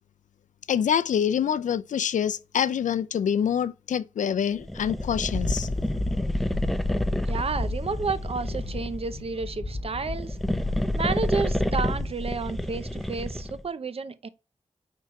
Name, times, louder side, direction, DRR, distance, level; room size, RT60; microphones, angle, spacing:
voice 1, 0.7-5.7, left 8 dB, 85° left, 0.4 m, -26 dB
sound 1, 4.6-9.1 10.0-13.7, left 1 dB, ahead, 0.7 m, -29 dB
sound 2, 5.0-12.1, left 2 dB, 55° left, 1.2 m, -33 dB
voice 2, 7.3-10.4 10.9-14.3, right 4 dB, 50° right, 0.7 m, -31 dB
4.7 x 4.5 x 5.7 m
cardioid pair, 55°, 13 cm